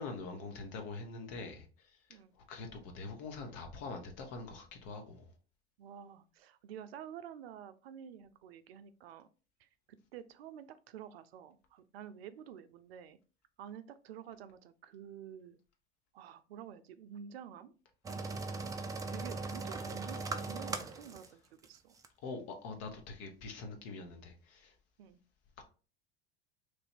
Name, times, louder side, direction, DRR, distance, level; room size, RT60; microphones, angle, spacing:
voice 1, 0.0-2.2 2.5-5.3 22.2-24.7 25.6-25.7, left 3 dB, 50° left, 1.1 m, -44 dB
voice 2, 5.8-9.3 9.6-9.7 10.1-13.2 13.6-15.6 16.1-17.7 19.1-21.4 21.7-22.0 25.0-25.2, right 9 dB, 70° right, 0.5 m, -49 dB
sound 1, 18.0-21.3 21.6-21.7 22.0-22.1, right 3 dB, 10° right, 0.3 m, -39 dB
3.2 x 2.6 x 4.3 m
hypercardioid pair, 85°, 32 cm